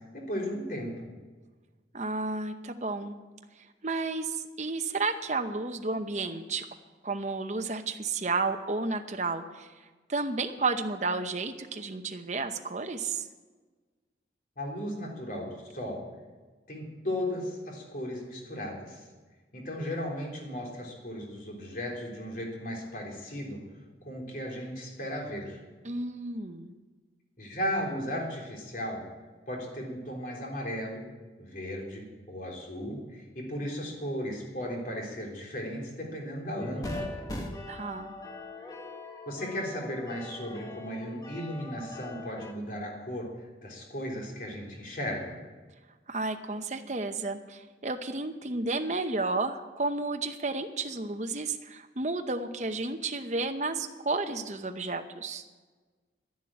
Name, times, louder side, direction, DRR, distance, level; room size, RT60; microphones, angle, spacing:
voice 1, 0.1-1.1 14.6-16.1 16.7-19.0 19.5-23.6 24.0-25.6 27.4-29.1 29.5-31.1 31.4-37.2 39.3-45.4, equal, 50° left, -1 dB, 3.6 m, -36 dB
voice 2, 1.9-3.1 3.8-6.7 7.0-9.7 10.1-13.3 25.8-26.7 37.7-38.1 46.1-55.4, right 3 dB, 40° right, 6 dB, 0.8 m, -32 dB
sound 1, 36.6-42.5, left 1 dB, 20° left, 1.5 m, -41 dB
11.5 x 11.0 x 8.7 m, 1.3 s
head